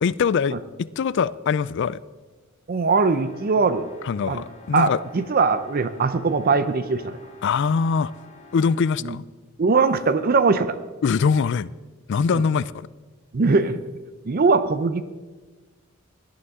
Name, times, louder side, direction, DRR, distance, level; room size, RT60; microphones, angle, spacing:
voice 1, 0.0-2.0 4.0-5.0 7.4-8.1 8.5-9.2 11.0-11.7 12.1-12.9, left 5 dB, 55° left, 18 dB, 0.3 m, -22 dB
voice 2, 2.7-3.9 4.3-4.4 4.7-7.2 9.0-9.1 9.6-10.8 12.3-12.4 13.3-13.8 14.3-15.0, right 4 dB, 45° right, 12 dB, 0.5 m, -21 dB
sound 1, 3.0-9.0, left 3 dB, 35° left, 2.3 m, -48 dB
17.5 x 11.5 x 3.6 m, 1.3 s
head